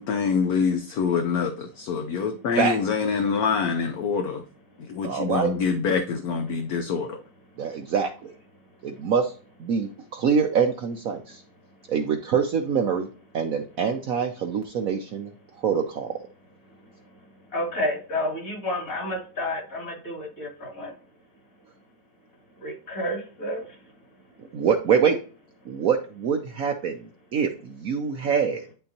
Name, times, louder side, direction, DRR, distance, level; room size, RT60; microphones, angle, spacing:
voice 1, 0.0-4.4 4.8-7.2, left 5 dB, 65° left, 5 dB, 1.0 m, -25 dB
voice 2, 5.0-5.5 7.6-8.3 8.8-9.3 9.6-11.4 11.9-13.1 13.3-15.3 15.6-16.1 24.5-25.2 25.7-27.0 27.3-28.7, right 6 dB, 60° right, 5 dB, 0.9 m, -24 dB
voice 3, 17.5-20.9 22.6-23.6, left 1 dB, 45° left, -2 dB, 3.4 m, -30 dB
11.0 x 3.9 x 2.8 m, 0.40 s
omnidirectional pair, 2.0 m